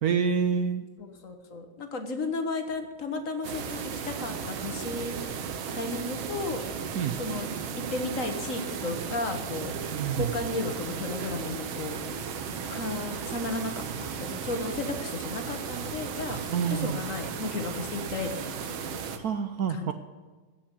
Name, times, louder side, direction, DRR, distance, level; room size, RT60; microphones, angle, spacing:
voice 1, 0.0-0.8 6.9-7.1 9.9-10.3 16.5-17.0 19.2-19.9, right 7 dB, 70° right, 9 dB, 0.9 m, -27 dB
voice 2, 1.0-5.1 5.7-6.6 7.2-7.5 7.9-9.7 10.1-12.0 12.7-16.4 16.7-18.6 19.7-19.9, left 3 dB, 45° left, 6 dB, 1.6 m, -34 dB
sound 1, 3.4-19.2, right 6 dB, 85° right, 1.9 m, -35 dB
15.0 x 5.9 x 8.3 m, 1.4 s
omnidirectional pair, 2.2 m